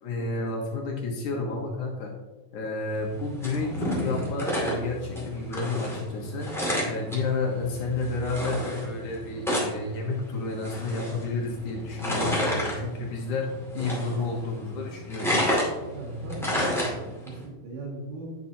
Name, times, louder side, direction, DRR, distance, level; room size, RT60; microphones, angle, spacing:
voice 1, 0.0-2.1 2.5-6.5 6.8-13.5 13.7-15.5, left 3 dB, 65° left, -1 dB, 2.4 m, -31 dB
sound 1, 2.9-17.4, equal, ahead, 0.9 m, -31 dB
voice 2, 15.9-18.4, right 2 dB, 85° right, -2 dB, 3.7 m, -39 dB
9.1 x 7.1 x 2.7 m, 1.2 s
omnidirectional pair, 4.1 m